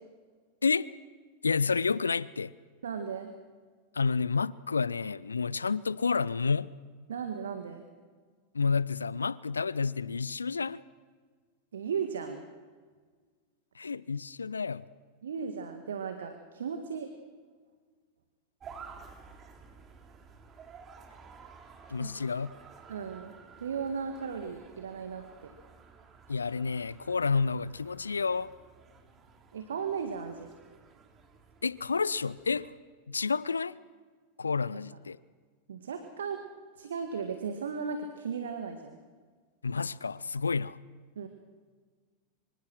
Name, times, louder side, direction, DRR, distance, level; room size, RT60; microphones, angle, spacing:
voice 1, 1.4-2.5 3.9-6.7 8.5-10.8 13.8-14.8 21.9-22.5 26.3-28.5 31.6-32.7 33.1-33.8 34.4-35.2 39.6-40.8, left 5 dB, 75° left, 0.6 m, -30 dB
voice 2, 2.8-3.3 7.1-7.8 11.7-12.4 15.2-17.1 22.0-22.1 22.9-23.3 23.6-25.5 29.5-30.5 35.7-36.4 36.8-39.0 41.2-41.3, right 6 dB, 65° right, 1.8 m, -36 dB
sound 1, 18.6-32.8, right 5 dB, 25° right, 3.4 m, -53 dB
25.5 x 25.5 x 6.3 m
figure-of-eight pair, 90°, 0 cm